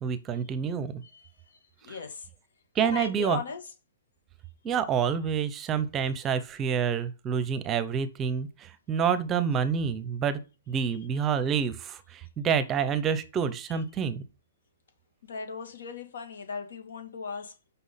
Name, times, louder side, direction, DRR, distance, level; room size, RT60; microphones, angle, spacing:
voice 1, 0.0-1.0 2.7-3.4 4.6-10.4 10.7-14.2, right 7 dB, 15° right, 0.7 m, -28 dB
voice 2, 1.0-1.6 1.8-2.3 2.8-3.6 10.8-11.3 15.2-17.7, left 5 dB, 80° left, 2.3 m, -38 dB
6.2 x 5.7 x 5.6 m
hypercardioid pair, 160°, 0 cm